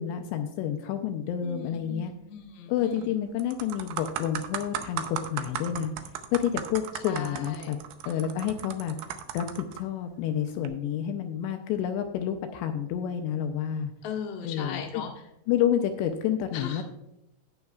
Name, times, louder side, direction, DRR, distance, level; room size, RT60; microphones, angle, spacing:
voice 1, 0.0-2.1 2.7-5.9 6.3-7.8 8.1-9.0 9.3-13.9 14.4-15.0 15.5-16.8, left 9 dB, 80° left, 6 dB, 2.7 m, -29 dB
voice 2, 1.4-3.1 7.1-7.7 8.1-8.3 14.0-15.1 16.5-16.8, left 7 dB, 60° left, 0 dB, 1.7 m, -38 dB
sound 1, 2.8-3.0 3.4-9.8 10.5-10.7, right 9 dB, 80° right, 2.3 m, -36 dB
19.0 x 6.4 x 2.3 m, 0.87 s
omnidirectional pair, 5.3 m